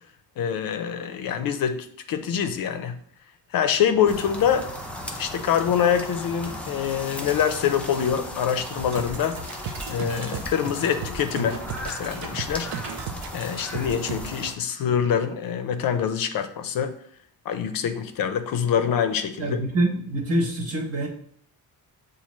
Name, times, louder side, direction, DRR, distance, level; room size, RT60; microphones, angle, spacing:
voice 1, 0.4-3.0 3.5-4.7 5.2-9.4 9.9-12.7 13.3-17.0 17.5-19.6, left 8 dB, 65° left, 9 dB, 0.5 m, -25 dB
sound 1, 4.1-14.5, left 1 dB, 5° left, 0.4 m, -37 dB
sound 2, 8.8-13.9, right 2 dB, 85° right, 1.1 m, -40 dB
sound 3, 9.0-14.4, right 7 dB, 65° right, 0.5 m, -35 dB
voice 2, 19.4-21.1, right 1 dB, 40° right, 1 dB, 1.0 m, -25 dB
7.0 x 2.4 x 3.1 m, 0.62 s
cardioid pair, 150°, 38 cm